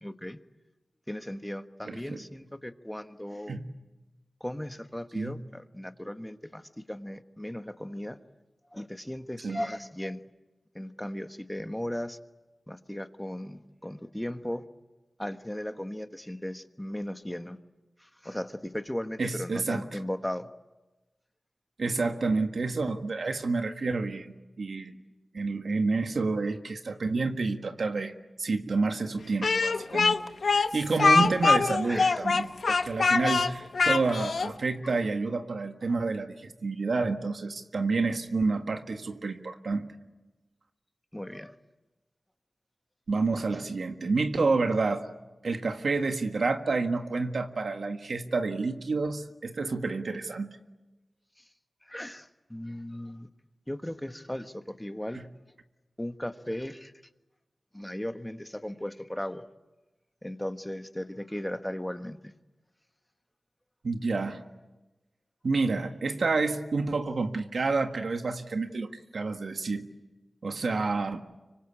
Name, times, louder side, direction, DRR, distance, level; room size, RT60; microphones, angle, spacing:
voice 1, 0.0-0.4 1.1-3.6 4.4-8.2 8.7-10.2 10.7-12.2 12.7-14.6 15.2-17.6 18.0-20.5 31.8-32.2 34.8-35.0 35.9-36.0 41.1-41.6 51.8-53.3 53.7-55.2 56.0-56.9 57.7-59.4 60.2-62.3, left 1 dB, 10° left, 9 dB, 1.3 m, -37 dB
voice 2, 1.8-2.2 3.5-3.6 5.1-5.4 9.4-9.6 19.2-19.8 21.8-25.0 25.3-28.1 28.4-30.2 30.5-39.9 43.1-45.1 45.4-50.5 55.1-55.2 63.8-64.4 65.4-69.9 70.4-71.2, right 3 dB, 75° right, 6 dB, 1.7 m, -29 dB
Speech, 29.4-34.5, left 4 dB, 75° left, 0.9 m, -24 dB
25.5 x 24.5 x 8.6 m, 1.1 s
cardioid pair, 55°, 0 cm